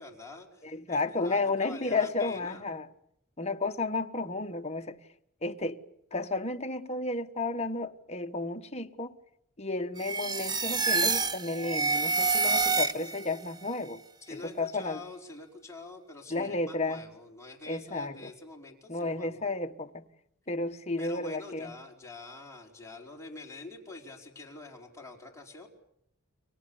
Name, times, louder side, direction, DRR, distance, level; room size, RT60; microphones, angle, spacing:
voice 1, 0.0-2.7 14.2-19.6 21.0-25.7, left 3 dB, 15° left, 4.7 m, -46 dB
voice 2, 0.6-2.9 3.4-5.0 5.4-5.8 6.1-9.2 9.6-14.0 14.3-15.0 16.3-17.0 17.7-18.3 18.9-20.0 20.5-21.7, left 3 dB, 30° left, 1.4 m, -32 dB
sound 1, 10.0-13.3, right 4 dB, 20° right, 1.0 m, -28 dB
30.0 x 23.5 x 7.2 m
head